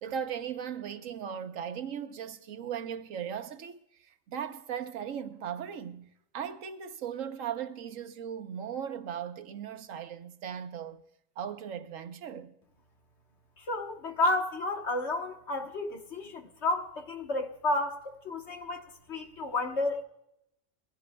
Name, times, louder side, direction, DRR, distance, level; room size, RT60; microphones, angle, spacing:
voice 1, 0.0-11.0 11.4-12.5, right 8 dB, 90° right, 1.3 m, -38 dB
voice 2, 13.6-20.0, left 2 dB, 60° left, 1.6 m, -31 dB
21.5 x 16.0 x 2.3 m
omnidirectional pair, 1.3 m